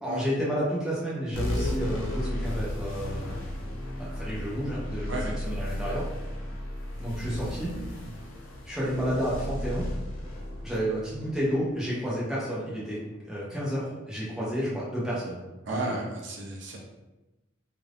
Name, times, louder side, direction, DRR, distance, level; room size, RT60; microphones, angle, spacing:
voice 1, 0.0-3.4 4.0-6.1 7.0-7.7 8.6-9.9 10.6-13.0 13.2-15.4 15.7-16.0, equal, ahead, -9 dB, 0.9 m, -31 dB
sound 1, 1.3-12.2, left 1 dB, 85° left, 0.7 m, -34 dB
voice 2, 15.7-16.8, right 2 dB, 65° right, 0 dB, 0.6 m, -33 dB
2.6 x 2.5 x 3.4 m, 1.0 s
head